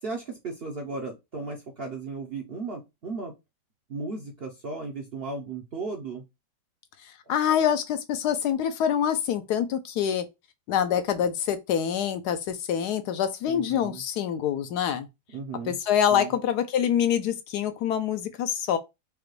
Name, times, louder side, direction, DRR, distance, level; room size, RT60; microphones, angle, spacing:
voice 1, 0.0-3.3 3.9-6.2 13.5-14.0 15.3-15.8 16.1-16.3, right 3 dB, 55° right, 0.7 m, -35 dB
voice 2, 7.3-10.3 10.7-15.1 15.7-18.8, left 9 dB, 75° left, 1.1 m, -25 dB
4.9 x 2.2 x 3.2 m
omnidirectional pair, 1.8 m